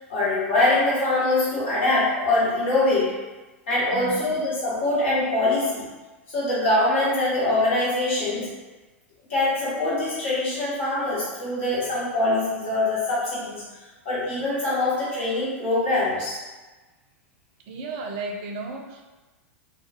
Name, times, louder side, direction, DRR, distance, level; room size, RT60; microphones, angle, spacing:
voice 1, 0.1-3.2 3.7-5.9 6.3-8.6 9.3-13.6 14.0-16.4, left 2 dB, 60° left, -9 dB, 1.3 m, -23 dB
voice 2, 3.9-4.2 17.7-19.0, right 3 dB, 50° right, 1 dB, 0.5 m, -34 dB
2.4 x 2.2 x 2.6 m, 1.2 s
figure-of-eight pair, 90°, 7 cm